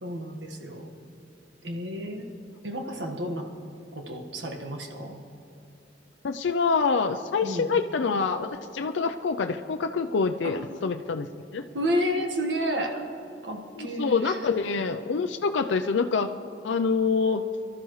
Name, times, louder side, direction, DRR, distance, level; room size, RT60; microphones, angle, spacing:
voice 1, 0.0-0.9 1.6-2.3 2.6-3.4 3.9-5.1 7.4-7.7 10.4-10.6 11.7-13.0 13.4-14.5, equal, 75° right, 3 dB, 1.5 m, -31 dB
voice 2, 6.2-11.6 13.8-16.3 16.6-17.5, left 5 dB, 90° left, 6 dB, 0.5 m, -26 dB
23.0 x 13.0 x 3.2 m, 2.8 s
head